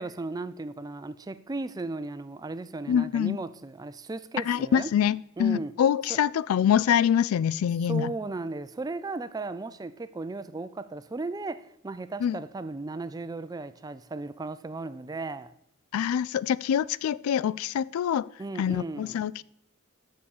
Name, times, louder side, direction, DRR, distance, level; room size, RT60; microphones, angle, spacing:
voice 1, 0.0-4.9 5.4-5.7 6.1-6.2 7.9-15.5 18.4-19.2, right 3 dB, 20° right, 0.3 m, -36 dB
voice 2, 2.9-3.4 4.5-8.1 12.2-12.4 15.9-18.3 18.6-19.4, left 9 dB, 85° left, 0.3 m, -25 dB
7.0 x 6.3 x 7.1 m
head